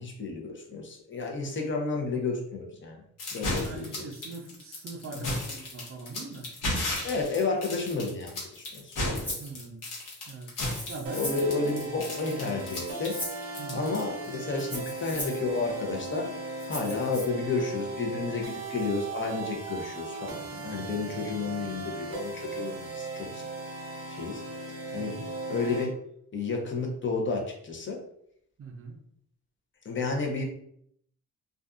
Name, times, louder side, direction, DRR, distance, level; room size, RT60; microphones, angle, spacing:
voice 1, 0.0-3.0 3.3-4.0 5.2-5.3 7.0-9.3 11.1-13.2 13.7-16.3 16.6-23.5 24.1-24.4 24.9-25.1 25.5-25.9 26.3-28.0 29.8-30.4, left 3 dB, 40° left, 1 dB, 0.7 m, -31 dB
sound 1, 3.2-14.4, left 1 dB, 75° left, 1.1 m, -34 dB
voice 2, 3.4-6.5 9.4-9.8 10.3-12.1 13.6-14.0 24.9-25.3 28.6-29.0, right 3 dB, 45° right, 3 dB, 0.5 m, -42 dB
Rattle (instrument), 9.2-9.5 10.6-11.5 12.6-13.5 14.6-15.4 16.6-17.2, left 1 dB, 5° left, 1.1 m, -38 dB
sound 2, 11.1-25.9, right 3 dB, 90° right, 0.6 m, -38 dB
2.5 x 2.3 x 2.4 m, 0.69 s
cardioid pair, 90°, 32 cm